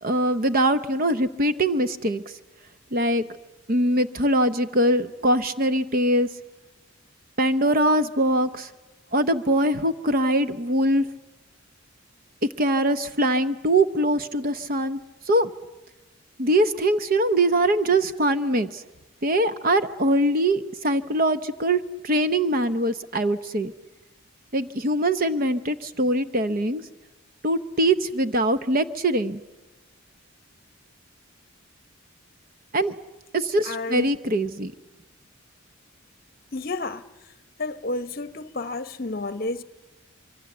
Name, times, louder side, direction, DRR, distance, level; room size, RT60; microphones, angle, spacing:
voice 1, 0.0-2.2 2.9-3.2 3.7-6.3 7.4-8.7 9.1-11.1 12.6-15.0 15.3-15.5 16.4-18.8 19.2-23.7 24.5-26.8 27.4-29.4 32.7-32.9 33.3-34.7, right 1 dB, 45° right, 0.8 m, -22 dB
voice 2, 33.6-34.1 36.5-37.0 37.6-39.6, left 2 dB, 45° left, 0.8 m, -31 dB
25.5 x 23.5 x 7.8 m
head